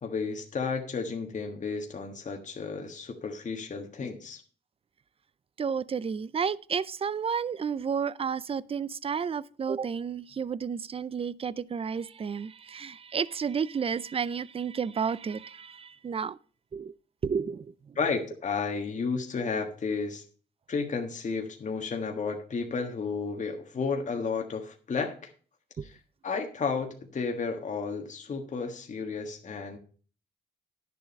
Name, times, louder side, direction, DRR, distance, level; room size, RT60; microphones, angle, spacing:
voice 1, 0.0-4.4 17.9-20.2 20.7-25.3 25.8-26.0 26.2-29.8, left 5 dB, 40° left, 1.5 m, -32 dB
voice 2, 5.6-16.4 16.7-16.9 17.2-18.0 25.8-25.9, right 6 dB, 30° right, 0.5 m, -31 dB
10.5 x 7.1 x 5.3 m
cardioid pair, 90°, 20 cm